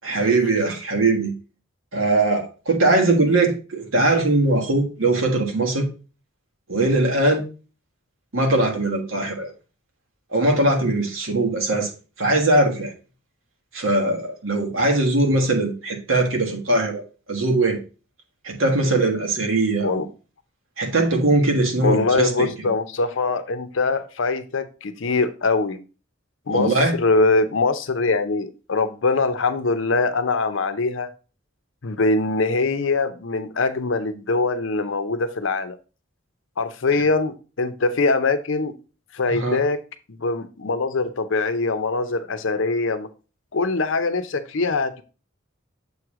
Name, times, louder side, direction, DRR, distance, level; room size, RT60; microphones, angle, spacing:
voice 1, 0.0-1.4 1.9-5.9 6.7-7.5 8.3-9.5 10.3-11.9 12.2-12.9 13.7-17.0 17.3-17.8 18.4-20.0 20.8-22.5 26.5-26.9 39.3-39.6, right 2 dB, 80° right, 2 dB, 1.4 m, -20 dB
voice 2, 21.8-25.8 26.5-31.1 31.8-35.8 36.6-38.8 39.1-39.8 40.2-43.1 43.5-45.0, left 3 dB, 65° left, 10 dB, 0.6 m, -22 dB
7.0 x 3.2 x 4.7 m, 0.34 s
head